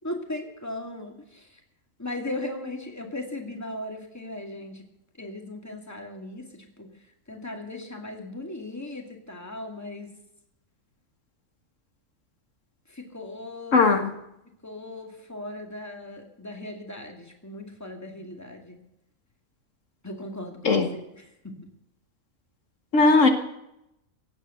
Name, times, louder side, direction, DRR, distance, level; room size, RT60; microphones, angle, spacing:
voice 1, 0.0-1.6 2.0-4.9 5.2-6.9 7.3-10.1 12.9-13.9 14.6-18.8 20.0-21.0 21.4-21.6, left 1 dB, 10° left, 3 dB, 2.3 m, -37 dB
voice 2, 13.7-14.1 20.6-20.9 22.9-23.3, left 3 dB, 75° left, 6 dB, 2.0 m, -18 dB
17.5 x 8.4 x 7.9 m, 0.82 s
omnidirectional pair, 1.3 m